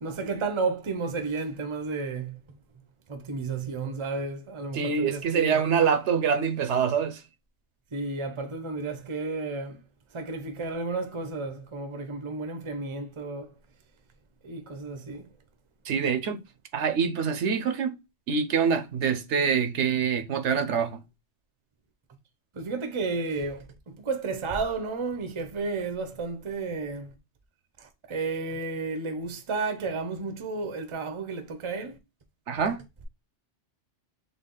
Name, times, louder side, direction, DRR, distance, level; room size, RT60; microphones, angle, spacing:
voice 1, 0.0-2.4 3.1-5.6 7.9-9.8 10.1-13.5 14.4-15.3 22.5-27.1 27.8-32.0, right 3 dB, 30° right, 0.7 m, -32 dB
voice 2, 4.7-7.2 15.9-16.4 16.7-17.9 18.3-20.9 32.5-32.8, right 6 dB, 70° right, 1.0 m, -25 dB
4.0 x 3.5 x 3.7 m
omnidirectional pair, 1.2 m